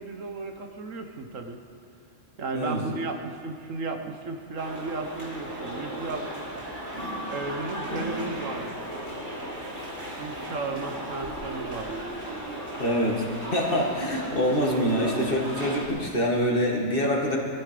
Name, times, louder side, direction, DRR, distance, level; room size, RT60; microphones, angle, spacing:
voice 1, 0.0-1.6 2.4-6.3 7.3-8.8 10.2-12.0, right 3 dB, 75° right, 5 dB, 1.5 m, -34 dB
sound 1, 4.6-15.8, right 1 dB, 40° right, 3.4 m, -35 dB
voice 2, 12.8-13.3 13.5-17.4, equal, 45° left, -1 dB, 2.2 m, -25 dB
21.0 x 13.5 x 5.1 m, 2.4 s
omnidirectional pair, 1.3 m